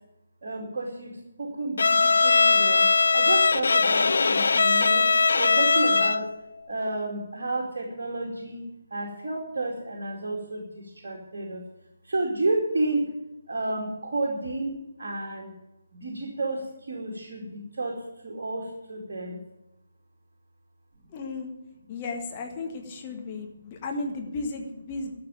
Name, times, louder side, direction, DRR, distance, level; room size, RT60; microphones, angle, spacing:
voice 1, 0.4-2.9 3.1-5.1 5.4-6.2 6.7-8.6 8.9-11.6 12.1-13.1 13.5-15.5 16.0-19.4, right 2 dB, 50° right, -2 dB, 2.4 m, -31 dB
Bowed string instrument, 1.8-6.3, left 4 dB, 60° left, 0.4 m, -20 dB
voice 2, 21.1-21.5 21.9-25.2, left 3 dB, 25° left, 2 dB, 1.7 m, -34 dB
13.0 x 6.8 x 9.1 m, 0.91 s
figure-of-eight pair, 145°, 0 cm